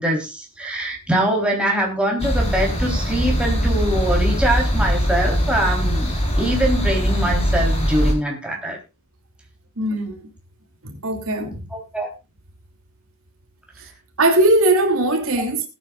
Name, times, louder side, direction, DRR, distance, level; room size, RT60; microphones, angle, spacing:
voice 1, 0.0-8.8 11.7-12.1, right 1 dB, 5° right, 3.6 m, -23 dB
sound 1, 2.2-8.1, equal, 30° left, 3.9 m, -21 dB
voice 2, 9.8-10.2 10.8-11.6 14.2-15.6, right 1 dB, 70° right, 2.8 m, -19 dB
19.5 x 9.3 x 2.4 m
head